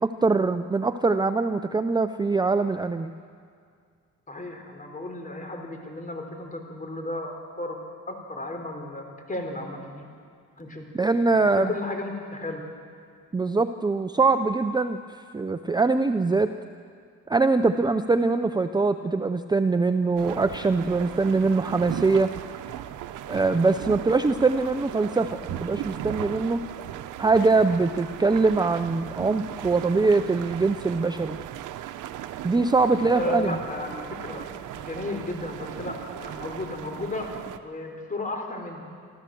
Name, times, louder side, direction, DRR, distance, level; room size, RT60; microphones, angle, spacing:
voice 1, 0.0-3.1 10.9-11.7 13.3-16.5 17.3-22.3 23.3-26.6 27.2-31.4 32.4-33.6, right 3 dB, 15° right, 9 dB, 0.6 m, -23 dB
voice 2, 4.3-7.8 8.1-10.0 10.6-10.8 11.3-12.6 33.1-34.5 34.7-37.4 37.6-38.8, left 2 dB, 25° left, 3 dB, 4.0 m, -34 dB
sound 1, 20.2-37.6, right 12 dB, 85° right, 0.9 m, -37 dB
25.5 x 14.0 x 7.8 m, 2.2 s
cardioid pair, 90°, 30 cm